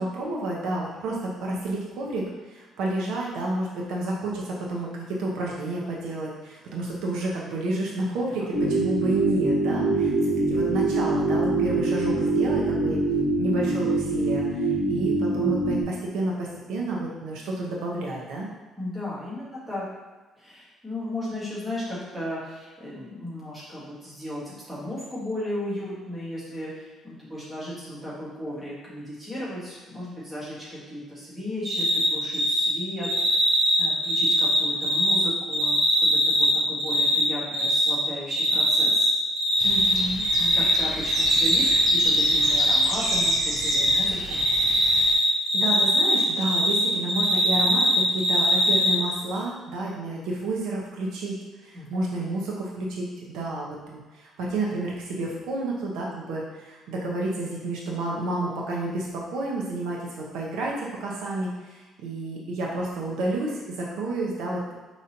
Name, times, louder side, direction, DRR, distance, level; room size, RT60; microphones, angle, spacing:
voice 1, 0.0-13.0 13.4-18.5 39.6-40.3 45.5-51.3 51.6-64.7, right 2 dB, 80° right, -3 dB, 0.9 m, -30 dB
sound 1, 8.5-15.8, right 2 dB, 25° left, 1.3 m, -24 dB
voice 2, 18.8-19.8 20.4-39.1 40.3-41.6 41.9-44.5 51.7-52.0, left 1 dB, 5° right, -9 dB, 1.5 m, -35 dB
Cricket, 31.6-32.1 32.3-32.6 33.0-35.2 35.5-37.2 37.5-37.9 38.3-39.1 39.4-40.8 41.0-43.3 43.6-44.0 44.3-46.8 47.1-48.9, equal, 60° right, 1.4 m, -21 dB
sound 2, 39.6-45.1, right 2 dB, 45° right, 0.7 m, -33 dB
5.1 x 3.1 x 2.8 m, 1.2 s
cardioid pair, 155°, 0 cm